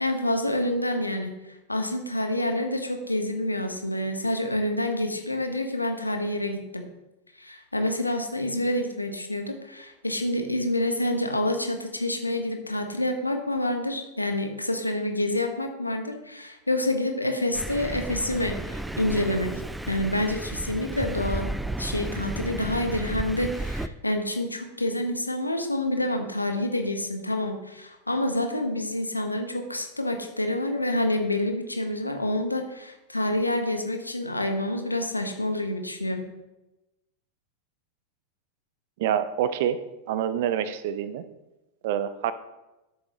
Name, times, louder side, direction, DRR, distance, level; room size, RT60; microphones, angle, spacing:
voice 1, 0.0-6.9 7.4-19.6 19.9-21.5 21.8-36.3, left 1 dB, 85° left, 5 dB, 1.2 m, -28 dB
Thunder, 17.5-23.9, right 2 dB, 5° right, 0.4 m, -33 dB
voice 2, 39.0-39.8 40.1-41.2 41.8-42.3, right 9 dB, 50° right, 14 dB, 0.6 m, -26 dB
12.5 x 7.2 x 3.0 m, 1.0 s
figure-of-eight pair, 90°, 0 cm